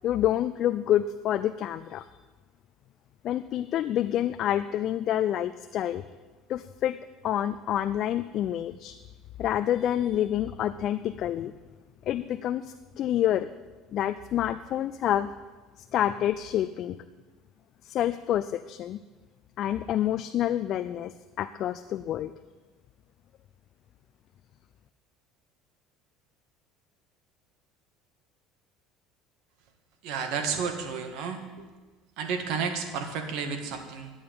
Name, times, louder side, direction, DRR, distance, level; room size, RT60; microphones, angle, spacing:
voice 1, 0.0-2.1 3.2-6.0 6.5-7.0 7.2-9.0 9.4-11.5 12.1-13.5 13.9-15.3 15.9-17.0 17.8-19.0 19.6-22.3, left 11 dB, 50° left, 12 dB, 0.4 m, -28 dB
voice 2, 30.0-31.7 32.2-34.1, right 5 dB, 70° right, 6 dB, 1.9 m, -32 dB
11.5 x 8.6 x 8.8 m, 1.3 s
cardioid pair, 130°, 0 cm